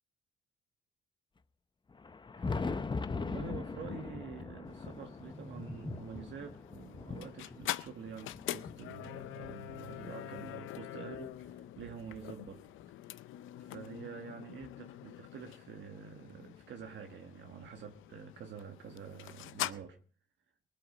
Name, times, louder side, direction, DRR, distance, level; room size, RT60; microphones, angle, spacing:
Thunder, 1.9-10.5 11.1-12.8 14.0-14.1 14.6-14.7 16.6-16.7 18.0-18.1 19.7-19.8, left 4 dB, 25° left, 0.8 m, -42 dB
voice 1, 3.1-12.7 13.6-20.0, right 6 dB, 65° right, 1.5 m, -47 dB
sound 1, 4.7-19.7, left 14 dB, 85° left, 0.6 m, -45 dB
sound 2, 4.7-10.8, left 1 dB, 5° left, 2.0 m, -52 dB
19.5 x 8.6 x 5.0 m
cardioid pair, 90°, 20 cm